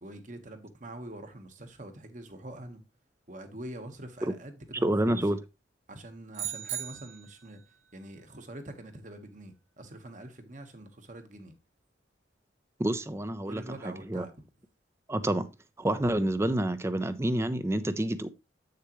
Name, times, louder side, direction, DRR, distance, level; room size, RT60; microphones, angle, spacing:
voice 1, 0.0-2.8 3.3-5.3 5.9-11.5 13.4-14.5, right 1 dB, 45° right, 1.3 m, -44 dB
voice 2, 4.8-5.4 12.8-14.2 15.1-15.5 15.8-18.3, right 1 dB, 15° right, 0.5 m, -28 dB
sound 1, 6.3-7.5, right 10 dB, 65° right, 2.1 m, -37 dB
8.1 x 6.6 x 3.1 m
head